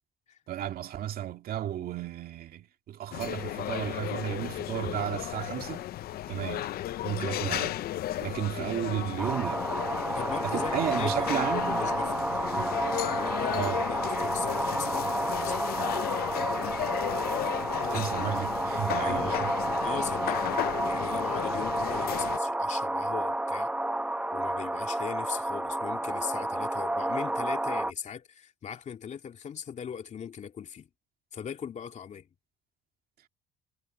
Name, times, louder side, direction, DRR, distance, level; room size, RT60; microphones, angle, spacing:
voice 1, 0.5-5.9 6.3-6.8 7.0-7.8 8.2-9.7 10.4-11.9 12.6-12.9 13.5-13.8 17.8-19.5, right 11 dB, 60° right, 2.2 m, -33 dB
sound 1, 3.1-22.4, left 13 dB, 65° left, 0.7 m, -34 dB
sound 2, 9.2-27.9, right 1 dB, 5° right, 1.1 m, -30 dB
voice 2, 10.1-12.4 13.0-15.6 19.0-19.4 19.8-23.7 24.3-30.9 31.3-32.3, left 7 dB, 45° left, 2.6 m, -39 dB
cardioid pair, 110°, 17 cm